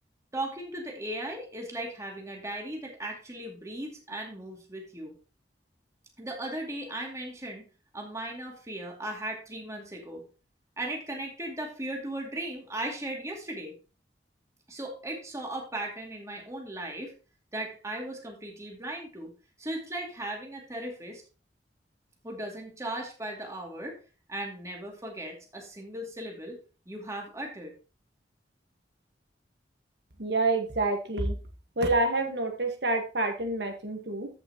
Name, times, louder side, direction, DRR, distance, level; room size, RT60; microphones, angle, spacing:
voice 1, 0.3-5.1 6.2-7.7 7.9-10.2 10.8-13.7 14.7-17.2 17.5-19.3 19.6-21.2 22.2-24.0 24.3-26.6 26.9-27.7, right 1 dB, 15° right, 0 dB, 2.4 m, -37 dB
voice 2, 30.2-31.4 31.8-34.3, right 2 dB, 75° right, 4 dB, 1.5 m, -27 dB
14.5 x 5.8 x 2.9 m, 0.33 s
head